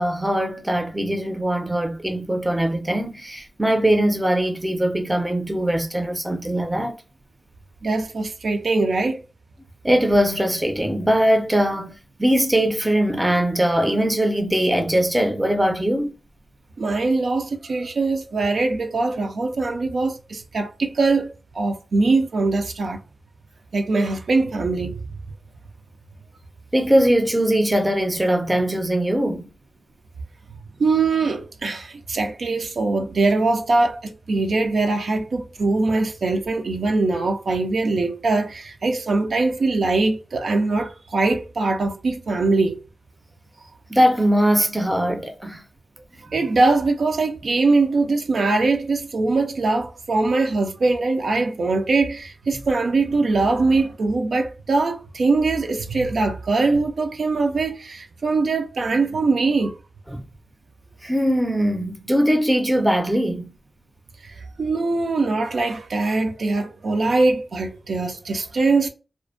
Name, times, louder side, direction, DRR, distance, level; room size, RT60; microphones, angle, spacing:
voice 1, 0.0-6.9 9.8-16.1 26.7-29.5 43.9-45.6 60.1-60.2 61.0-63.5, equal, 15° right, 0.5 m, -21 dB
voice 2, 7.8-9.2 16.8-23.0 23.7-25.0 30.8-42.8 46.3-59.8 64.2-68.9, right 3 dB, 80° right, 0.4 m, -22 dB
2.4 x 2.1 x 2.4 m
wide cardioid pair, 70°, 0 cm